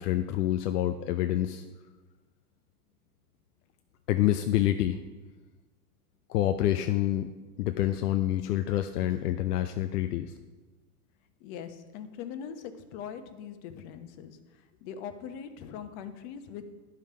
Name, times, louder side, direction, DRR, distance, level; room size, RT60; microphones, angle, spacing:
voice 1, 0.0-1.6 4.1-5.0 6.3-7.3 7.6-10.3, left 12 dB, 80° left, 8 dB, 0.6 m, -27 dB
voice 2, 11.4-16.6, left 8 dB, 50° left, 8 dB, 1.1 m, -42 dB
11.0 x 5.7 x 4.9 m, 1.3 s
hypercardioid pair, 120°, 46 cm